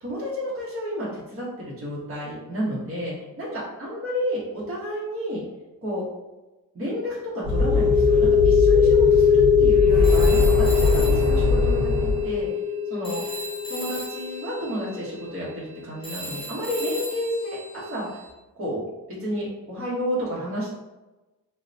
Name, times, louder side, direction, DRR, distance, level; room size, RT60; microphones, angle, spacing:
voice 1, 0.0-5.4 5.8-6.0 6.7-12.5 12.9-13.2 13.7-18.2 18.6-18.8 19.1-20.7, equal, 40° right, -7 dB, 1.1 m, -31 dB
sound 1, 7.4-14.9, left 6 dB, 10° right, 1.5 m, -20 dB
sound 2, 7.4-12.4, left 2 dB, 75° right, 1.0 m, -23 dB
Telephone, 10.0-12.8 13.0-18.3, right 1 dB, 15° left, 0.7 m, -38 dB
3.7 x 2.1 x 2.6 m, 1.1 s
wide cardioid pair, 175°, 35 cm